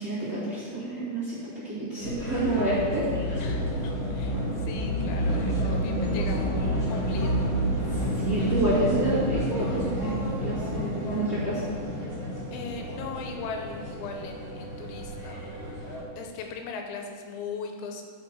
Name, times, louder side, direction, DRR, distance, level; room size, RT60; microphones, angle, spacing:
voice 1, 0.0-3.3 8.2-11.6, right 1 dB, 30° right, -11 dB, 1.9 m, -29 dB
sound 1, 2.0-16.0, equal, 50° left, 1.4 m, -29 dB
voice 2, 3.3-7.5 12.5-15.5 16.2-18.0, left 5 dB, 85° left, 3 dB, 3.0 m, -39 dB
12.0 x 5.7 x 4.6 m, 2.1 s
omnidirectional pair, 5.3 m